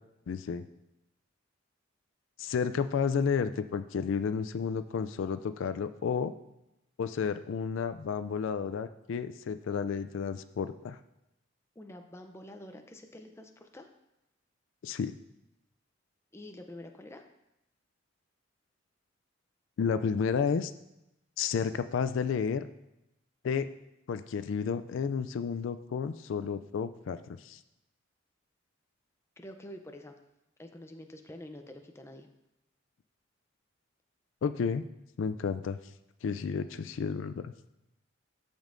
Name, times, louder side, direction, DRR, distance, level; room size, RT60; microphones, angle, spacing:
voice 1, 0.3-0.6 2.4-6.3 7.0-11.0 14.8-15.1 19.8-20.7 21.4-22.7 23.4-23.7 24.1-27.2 27.4-27.6 34.4-34.9 35.2-35.8 36.2-37.5, left 6 dB, 70° left, 11 dB, 0.3 m, -31 dB
voice 2, 11.8-13.9 16.3-17.2 29.4-30.2 30.6-32.3, left 1 dB, 15° left, 5 dB, 0.5 m, -47 dB
13.5 x 5.3 x 2.6 m, 0.89 s
head